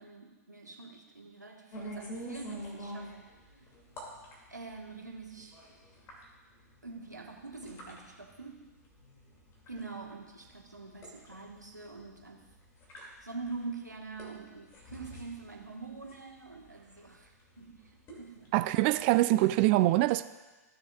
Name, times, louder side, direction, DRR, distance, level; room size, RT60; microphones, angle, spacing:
voice 1, 0.0-3.1 4.5-5.6 6.8-8.6 9.7-12.5 13.2-18.5, right 4 dB, 90° right, 1 dB, 1.4 m, -45 dB
sound 1, 1.7-19.3, equal, 30° left, 2.5 m, -48 dB
voice 2, 18.5-20.2, right 17 dB, 40° right, 12 dB, 0.4 m, -24 dB
15.0 x 6.8 x 2.4 m, 1.2 s
figure-of-eight pair, 105°, 9 cm